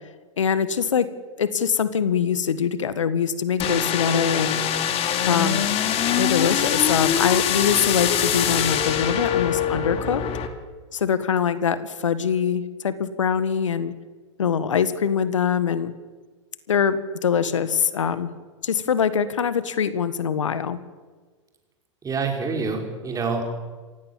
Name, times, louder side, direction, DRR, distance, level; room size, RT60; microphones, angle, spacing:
voice 1, 0.4-1.1 1.4-4.6 5.3-5.7 6.2-10.2 10.9-13.9 14.4-15.9 16.7-18.3 18.6-20.8, left 7 dB, 75° left, 14 dB, 1.5 m, -23 dB
sound 1, 3.6-10.5, left 9 dB, 35° left, 2.7 m, -23 dB
voice 2, 22.0-23.5, right 4 dB, 20° right, 3 dB, 5.4 m, -26 dB
28.0 x 16.5 x 7.4 m, 1.4 s
figure-of-eight pair, 95°, 16 cm